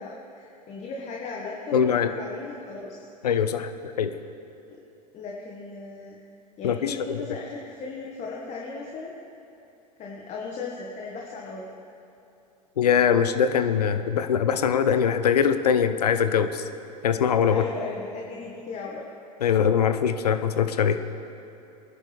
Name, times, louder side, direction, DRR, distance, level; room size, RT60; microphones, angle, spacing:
voice 1, 0.0-3.1 5.1-6.2 6.6-9.2 10.0-11.7 17.5-19.1, left 4 dB, 35° left, -2 dB, 1.8 m, -36 dB
voice 2, 1.7-2.1 3.2-3.7 4.0-4.1 6.6-7.2 12.8-16.6 17.0-17.6 19.4-21.0, left 7 dB, 70° left, 9 dB, 0.9 m, -22 dB
23.0 x 10.5 x 3.6 m, 2.9 s
figure-of-eight pair, 80°, 21 cm